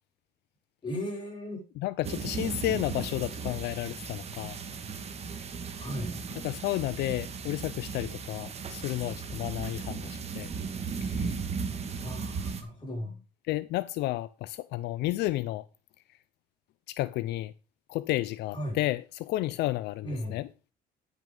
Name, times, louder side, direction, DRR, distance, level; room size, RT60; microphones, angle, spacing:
voice 1, 0.8-1.6 5.8-6.2 12.0-13.2 18.5-18.8 20.0-20.4, left 1 dB, 30° left, 5.2 m, -36 dB
voice 2, 1.8-4.6 6.4-10.5 11.0-11.4 13.5-15.7 16.9-17.5 17.9-20.5, left 16 dB, 80° left, 0.5 m, -32 dB
sound 1, 2.0-12.6, right 5 dB, 40° right, 1.7 m, -36 dB
10.5 x 6.2 x 5.3 m
cardioid pair, 110°, 17 cm